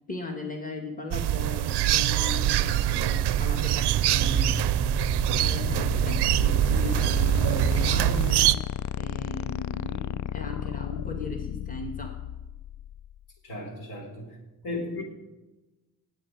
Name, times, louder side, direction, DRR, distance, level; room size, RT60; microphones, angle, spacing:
voice 1, 0.1-4.5 5.3-8.6 9.0-12.1, left 2 dB, 20° left, 2 dB, 2.0 m, -37 dB
sound 1, 1.1-8.6, right 14 dB, 80° right, 0.5 m, -24 dB
sound 2, 2.3-8.1, right 4 dB, 15° right, 0.5 m, -32 dB
sound 3, 4.4-13.2, left 12 dB, 50° left, 0.4 m, -34 dB
voice 2, 6.8-7.3 13.4-14.4 14.6-15.0, left 2 dB, 70° left, 1 dB, 4.2 m, -36 dB
17.5 x 8.4 x 4.9 m, 1.1 s
cardioid pair, 75°, 40 cm